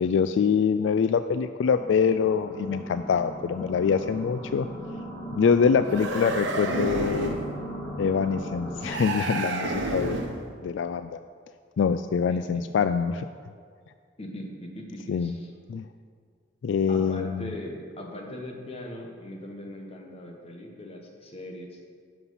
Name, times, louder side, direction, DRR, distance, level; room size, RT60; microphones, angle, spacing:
voice 1, 0.0-4.7 5.4-7.4 8.0-10.2 10.6-11.2 11.8-13.3 15.1-15.3 15.7-15.9 16.6-17.5, left 6 dB, 70° left, 10 dB, 0.3 m, -24 dB
sound 1, 1.7-9.0, equal, 15° left, 1.5 m, -38 dB
sound 2, 5.8-7.5 8.8-10.4, right 2 dB, 80° right, 1.2 m, -30 dB
voice 2, 12.3-12.6 14.2-15.5 16.9-21.8, left 1 dB, 35° left, 1 dB, 1.3 m, -40 dB
11.0 x 5.9 x 5.8 m, 2.1 s
head